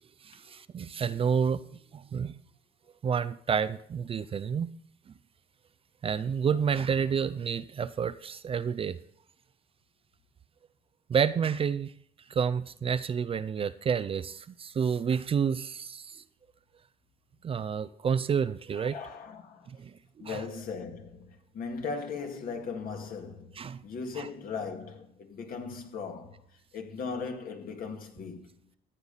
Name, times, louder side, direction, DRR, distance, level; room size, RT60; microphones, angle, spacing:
voice 1, 0.2-1.6 1.9-2.4 3.0-4.7 5.1-5.2 6.0-9.0 11.1-11.9 12.3-16.2 17.4-18.9 19.7-20.4 23.6-23.8 24.2-24.3, right 7 dB, 35° right, 0.5 m, -29 dB
voice 2, 18.7-19.7 20.2-26.5 26.7-28.6, left 5 dB, 60° left, 2.1 m, -38 dB
14.5 x 8.8 x 4.1 m
cardioid pair, 110°, 17 cm